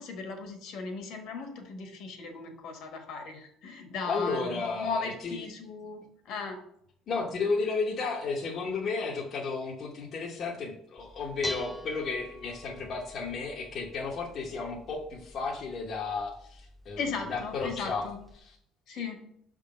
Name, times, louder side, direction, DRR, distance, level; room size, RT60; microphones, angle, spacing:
voice 1, 0.0-6.6 17.0-18.2 18.9-19.2, left 4 dB, 55° left, 4 dB, 1.3 m, -37 dB
voice 2, 4.0-5.4 7.1-18.0 18.4-18.5, left 4 dB, 35° left, -2 dB, 0.9 m, -33 dB
Dishes pots and pans, 11.0-18.4, left 1 dB, 10° left, 0.4 m, -46 dB
6.2 x 3.7 x 5.1 m, 0.70 s
cardioid pair, 180°, 0 cm